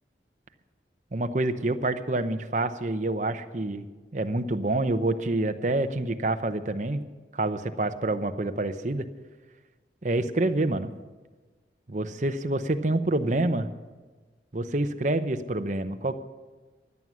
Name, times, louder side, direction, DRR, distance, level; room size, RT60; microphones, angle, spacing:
voice 1, 1.1-3.9 4.1-7.0 7.3-9.1 10.0-10.9 11.9-13.7 14.5-16.2, right 2 dB, 40° right, 9 dB, 0.8 m, -27 dB
16.5 x 11.0 x 6.2 m, 1.3 s
head